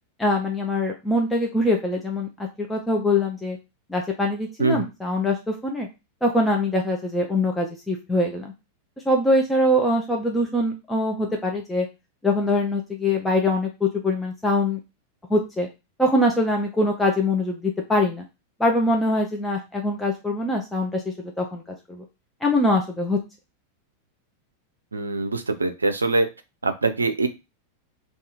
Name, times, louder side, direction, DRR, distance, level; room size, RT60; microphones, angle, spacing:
voice 1, 0.2-2.3 2.6-3.6 3.9-5.9 6.2-8.5 9.1-11.9 12.2-14.8 15.3-15.7 16.0-18.2 18.6-21.6 21.9-22.0 22.4-23.2, left 1 dB, 10° left, 1 dB, 0.5 m, -23 dB
voice 2, 24.9-26.3 26.6-27.3, right 3 dB, 75° right, 8 dB, 0.5 m, -23 dB
2.7 x 2.4 x 4.0 m, 0.26 s
figure-of-eight pair, 90°, 0 cm